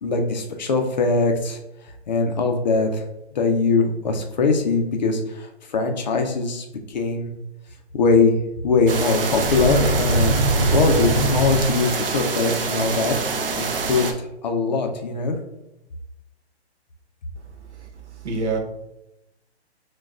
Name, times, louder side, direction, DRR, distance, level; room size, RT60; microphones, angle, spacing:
voice 1, 0.0-1.6 2.1-3.0 3.3-7.3 7.9-8.4 8.6-10.4 10.7-13.1 13.6-15.4, left 3 dB, 40° left, 4 dB, 0.5 m, -21 dB
sound 1, 8.9-14.1, right 4 dB, 55° right, 0.6 m, -26 dB
sound 2, 9.3-12.1, right 1 dB, ahead, 0.6 m, -22 dB
voice 2, 17.4-18.6, right 4 dB, 85° right, 3 dB, 1.0 m, -29 dB
6.1 x 2.2 x 2.4 m, 0.89 s
hypercardioid pair, 155°, 34 cm